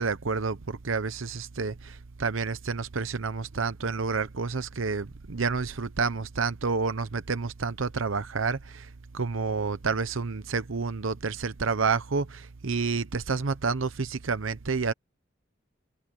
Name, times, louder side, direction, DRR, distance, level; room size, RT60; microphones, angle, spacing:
voice 1, 0.0-14.9, right 4 dB, 90° right, 0.8 m, -29 dB
head